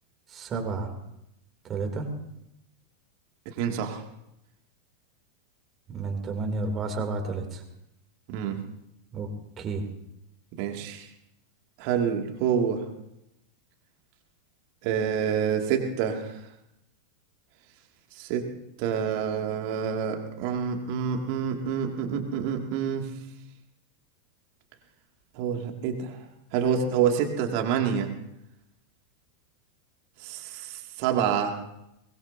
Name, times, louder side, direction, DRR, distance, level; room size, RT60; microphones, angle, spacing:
voice 1, 0.3-0.9 1.7-2.0 5.9-7.6 9.1-9.3 9.6-9.8, right 3 dB, 25° right, 3 dB, 3.2 m, -31 dB
voice 2, 3.5-4.0 8.3-8.6 10.6-11.1 11.8-12.8 14.8-16.4 18.1-18.4 18.8-23.0 25.4-26.2 26.5-28.1 30.2-31.5, right 7 dB, 45° right, 3 dB, 2.5 m, -27 dB
23.5 x 20.5 x 2.9 m, 0.85 s
figure-of-eight pair, 90°, 0 cm